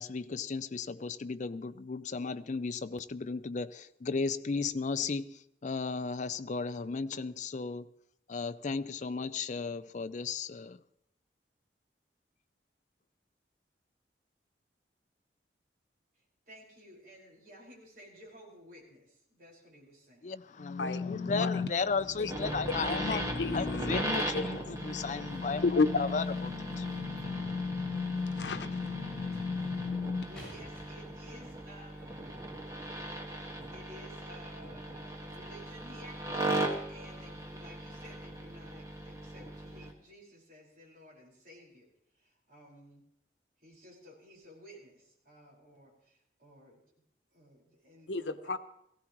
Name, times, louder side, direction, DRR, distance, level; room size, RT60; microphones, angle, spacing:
voice 1, 0.0-7.9 8.3-10.8 20.2-23.2 23.5-26.8, left 4 dB, 45° left, 0.5 m, -35 dB
voice 2, 16.5-20.3 30.2-32.5 33.7-36.2 36.9-41.9 42.2-43.0 43.6-46.8 47.3-48.5, equal, 55° right, 5.1 m, -54 dB
sound 1, 20.6-30.2, left 4 dB, 70° left, 1.0 m, -36 dB
voice 3, 20.8-21.5 22.2-22.3 23.1-23.6 24.3-25.0 25.6-26.0 28.4-28.8 48.1-48.6, left 3 dB, 90° left, 0.9 m, -32 dB
sound 2, 22.3-39.9, right 1 dB, 20° right, 1.6 m, -39 dB
sound 3, 30.4-31.9 32.7-32.8, equal, 5° left, 7.4 m, -53 dB
18.5 x 16.0 x 3.1 m
head